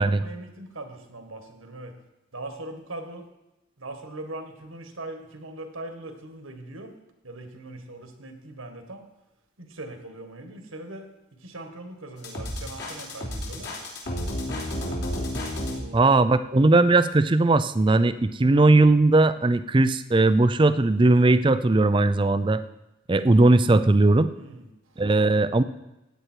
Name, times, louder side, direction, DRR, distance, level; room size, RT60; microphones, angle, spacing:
voice 1, 0.0-1.9 2.3-3.3 3.8-6.9 7.2-9.0 9.6-11.1 11.4-13.7 15.6-16.3 23.1-23.3 24.3-25.0, right 2 dB, 80° right, 6 dB, 1.8 m, -40 dB
sound 1, 12.2-15.8, left 1 dB, 55° left, 3.1 m, -31 dB
voice 2, 15.9-22.6 23.1-24.3 25.0-25.6, right 2 dB, 25° right, 13 dB, 0.4 m, -19 dB
15.0 x 9.1 x 4.6 m, 0.95 s
head